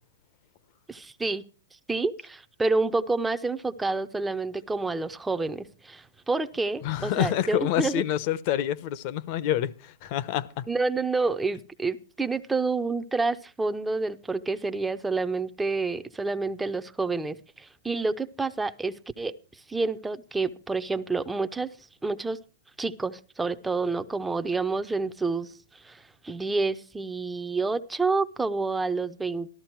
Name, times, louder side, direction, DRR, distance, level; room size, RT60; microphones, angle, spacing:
voice 1, 0.9-1.4 1.9-8.0 10.7-19.3 19.7-21.7 22.0-22.4 22.8-29.5, right 3 dB, 5° right, 0.6 m, -28 dB
voice 2, 6.8-10.7, left 11 dB, 35° left, 0.8 m, -27 dB
13.5 x 13.0 x 4.5 m
hypercardioid pair, 160°, 0 cm